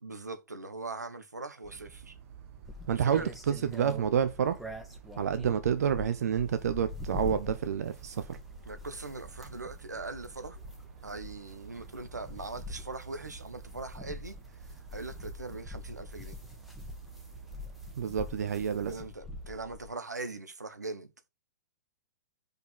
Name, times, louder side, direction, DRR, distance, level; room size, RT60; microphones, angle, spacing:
voice 1, 0.0-2.1 2.9-3.3 8.6-10.6 11.0-14.4 14.9-16.4 18.9-21.1, right 3 dB, 90° right, 1.1 m, -41 dB
sound 1, 1.6-18.7, right 7 dB, 50° right, 1.6 m, -51 dB
sound 2, 2.6-19.9, left 2 dB, ahead, 1.7 m, -45 dB
voice 2, 2.9-4.6 5.2-8.4 18.0-18.9, right 8 dB, 65° right, 0.8 m, -29 dB
5.3 x 4.6 x 6.2 m
figure-of-eight pair, 105°, 9 cm